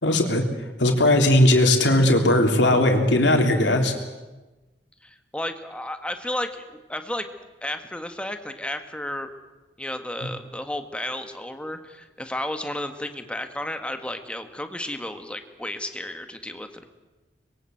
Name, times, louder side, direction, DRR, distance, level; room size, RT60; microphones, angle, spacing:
voice 1, 0.0-3.9 10.2-10.3, left 1 dB, 75° left, 3 dB, 3.7 m, -19 dB
voice 2, 5.0-7.3 7.6-9.3 9.8-16.9, left 1 dB, 5° left, 7 dB, 1.8 m, -33 dB
25.0 x 22.0 x 7.9 m, 1.1 s
head